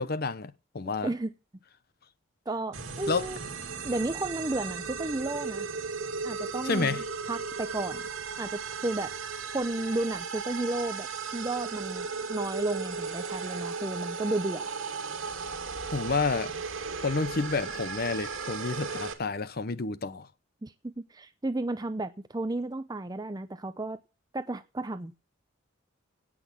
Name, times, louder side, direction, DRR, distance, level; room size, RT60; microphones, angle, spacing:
voice 1, 0.0-1.1 3.1-3.3 6.6-7.0 15.9-16.6 17.0-20.3, left 4 dB, 50° left, 0.8 m, -30 dB
voice 2, 2.5-3.4 3.8-5.7 6.2-8.0 8.4-9.1 9.5-11.1 11.3-14.7 20.6-24.0 24.3-25.2, right 2 dB, 20° right, 0.6 m, -33 dB
sound 1, 2.7-19.1, right 5 dB, 80° right, 2.4 m, -36 dB
17.5 x 6.2 x 7.3 m
head